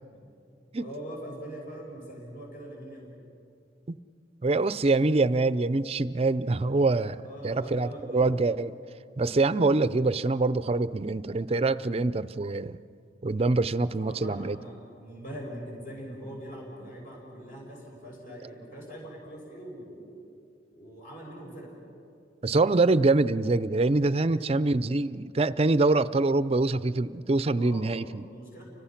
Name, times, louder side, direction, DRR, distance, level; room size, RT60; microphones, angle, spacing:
voice 1, 0.8-3.2 7.2-8.4 14.0-20.1 20.7-21.8 24.3-24.6 27.6-27.9 28.2-28.6, equal, 50° left, -2 dB, 5.6 m, -42 dB
voice 2, 4.4-8.7 9.2-12.8 13.2-14.6 22.4-28.2, right 3 dB, 35° right, 15 dB, 0.5 m, -25 dB
30.0 x 25.0 x 5.9 m, 2.5 s
head